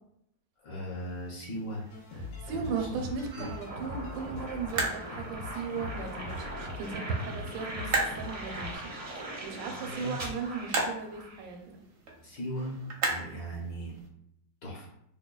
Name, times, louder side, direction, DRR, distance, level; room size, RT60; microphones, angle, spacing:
voice 1, 0.6-1.8 2.5-3.1 3.4-3.5 9.7-10.1 12.2-12.8 13.0-13.9 14.6-14.9, right 1 dB, 65° left, -5 dB, 1.3 m, -38 dB
sound 1, 0.9-14.1, right 3 dB, 65° right, 0.8 m, -38 dB
sound 2, 1.9-8.8, left 2 dB, 85° left, 1.6 m, -42 dB
voice 2, 2.2-11.8, right 5 dB, 80° right, 3 dB, 1.4 m, -37 dB
sound 3, 3.7-11.5, right 1 dB, 45° right, 0.4 m, -41 dB
5.1 x 2.2 x 2.3 m, 0.76 s
omnidirectional pair, 2.1 m